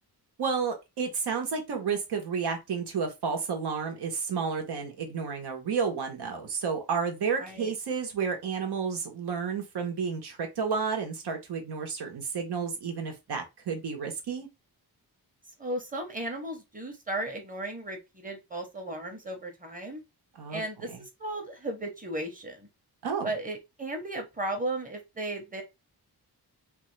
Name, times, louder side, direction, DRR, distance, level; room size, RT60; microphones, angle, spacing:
voice 1, 0.4-14.5 20.3-20.6 20.9-21.0 23.0-23.3, right 5 dB, 85° right, 1.1 m, -31 dB
voice 2, 7.4-7.7 15.6-20.0 20.5-22.7 23.2-25.6, right 1 dB, 20° right, 0.9 m, -35 dB
3.4 x 2.4 x 3.1 m
wide cardioid pair, 155°, 39 cm